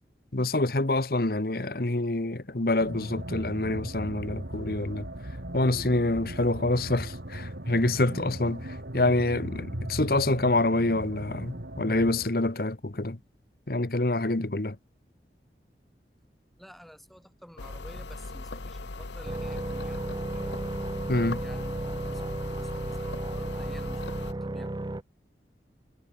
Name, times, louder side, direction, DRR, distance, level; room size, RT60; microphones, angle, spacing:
voice 1, 0.3-5.1 5.5-8.6 8.9-13.2 13.7-14.7 21.1-21.4, left 2 dB, 55° left, 1.3 m, -26 dB
sound 1, 2.8-12.3, right 1 dB, 75° right, 3.9 m, -38 dB
voice 2, 16.6-20.4 21.4-24.8, equal, ahead, 4.7 m, -51 dB
sound 2, 17.6-24.3, left 3 dB, 80° left, 1.1 m, -39 dB
sound 3, 19.2-25.0, right 2 dB, 25° right, 0.5 m, -34 dB
head